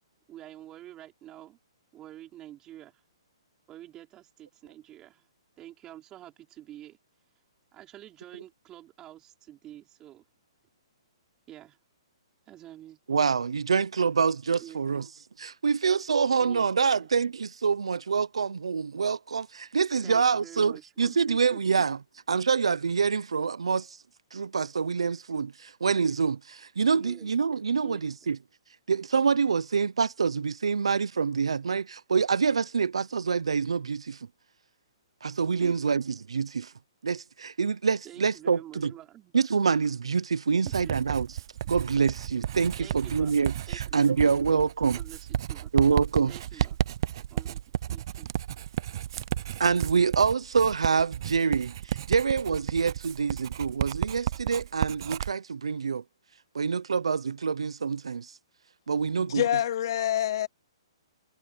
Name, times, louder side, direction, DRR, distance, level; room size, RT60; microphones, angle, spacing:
voice 1, 0.3-1.6 1.9-3.0 3.7-5.3 5.6-7.0 7.7-10.2 11.5-11.8 12.5-13.0 14.6-15.1 16.4-17.1 20.0-21.9 26.9-27.3 27.8-28.1 35.6-35.9 38.0-39.3 40.5-40.9 42.8-44.6 44.9-45.8 46.3-46.8 47.3-47.6 47.9-48.3, right 13 dB, 20° right, 5.3 m, -48 dB
voice 2, 13.1-15.1 15.4-22.0 22.3-24.0 24.3-28.4 28.9-34.2 35.2-36.7 37.0-38.9 39.3-41.3 41.7-45.0 45.7-46.3 49.6-56.0 56.5-58.3 58.9-59.4, right 5 dB, 90° right, 0.8 m, -26 dB
Writing, 40.7-55.3, right 11 dB, 50° right, 0.6 m, -33 dB
voice 3, 59.3-60.5, left 11 dB, 50° left, 0.8 m, -26 dB
hypercardioid pair, 145°, 3 cm